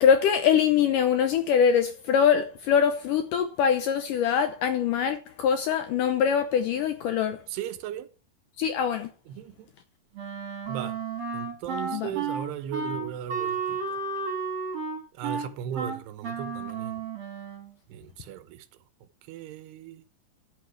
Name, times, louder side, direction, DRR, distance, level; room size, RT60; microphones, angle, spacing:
voice 1, 0.0-7.4 8.6-9.1 11.9-12.1, left 7 dB, 80° left, 2.0 m, -23 dB
voice 2, 7.5-8.1 9.3-9.7 10.7-11.0 11.3-13.8 15.2-17.0 17.9-18.7 19.3-20.0, right 10 dB, 90° right, 3.0 m, -37 dB
Wind instrument woodwind instrument, 10.1-17.7, right 5 dB, 45° right, 3.7 m, -32 dB
11.0 x 8.3 x 4.7 m
omnidirectional pair, 4.7 m